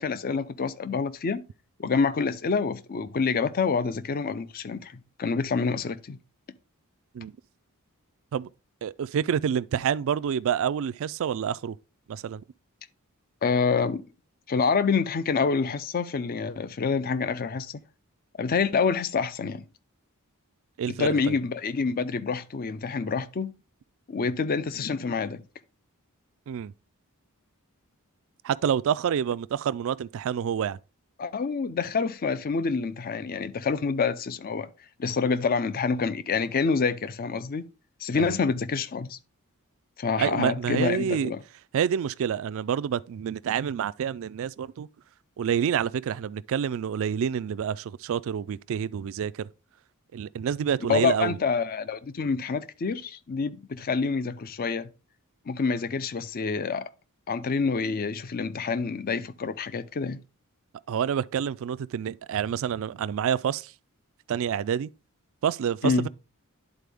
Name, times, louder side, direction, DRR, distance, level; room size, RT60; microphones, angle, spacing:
voice 1, 0.0-1.4 1.8-6.2 13.4-14.0 14.5-17.8 18.4-19.6 20.9-23.5 24.1-25.4 31.2-34.7 35.0-37.6 38.0-39.2 40.0-41.4 50.9-54.9 55.5-56.9 57.3-60.2 65.8-66.1, left 5 dB, 40° left, 0.5 m, -27 dB
voice 2, 8.8-11.8 12.1-12.4 20.8-21.4 26.5-26.7 28.4-30.8 38.1-38.4 40.2-41.3 41.7-44.9 45.4-49.5 50.1-51.4 60.9-63.7 64.3-64.9 65.4-66.1, right 8 dB, 65° right, 0.3 m, -28 dB
11.0 x 4.1 x 3.5 m
head